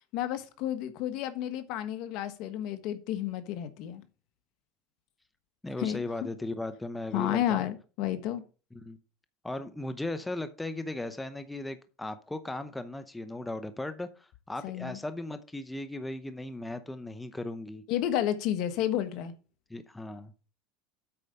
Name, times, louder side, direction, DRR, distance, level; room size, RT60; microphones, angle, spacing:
voice 1, 0.1-4.0 5.8-6.0 7.1-8.4 14.6-15.0 17.9-19.3, left 11 dB, 60° left, 1.4 m, -31 dB
voice 2, 5.6-7.7 8.7-9.0 9.4-17.8 19.7-20.3, left 2 dB, 10° left, 0.7 m, -37 dB
8.6 x 4.9 x 6.7 m
supercardioid pair, 120°, 0 cm